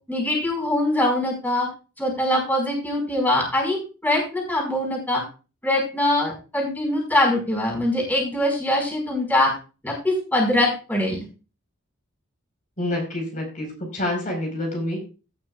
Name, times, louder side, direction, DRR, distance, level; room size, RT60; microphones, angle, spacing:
voice 1, 0.1-1.7 2.0-5.2 5.6-9.5 9.8-11.3, left 1 dB, 10° left, -1 dB, 5.0 m, -23 dB
voice 2, 12.8-13.7 13.9-15.0, left 1 dB, 40° left, 0 dB, 4.7 m, -27 dB
18.0 x 7.4 x 2.4 m, 0.33 s
head